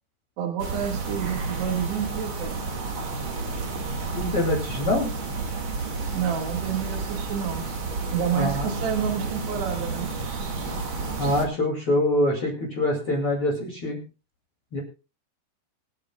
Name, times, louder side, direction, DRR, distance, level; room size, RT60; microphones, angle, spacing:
voice 1, 0.4-2.6 6.1-7.6 8.1-10.1, right 8 dB, 75° right, 3 dB, 3.9 m, -29 dB
sound 1, 0.6-11.5, right 3 dB, 45° right, 1.7 m, -31 dB
voice 2, 4.1-5.1 8.3-8.7 11.2-14.0 14.7-14.8, left 1 dB, 40° left, 1 dB, 2.6 m, -24 dB
26.0 x 8.9 x 2.3 m, 0.31 s
omnidirectional pair, 5.0 m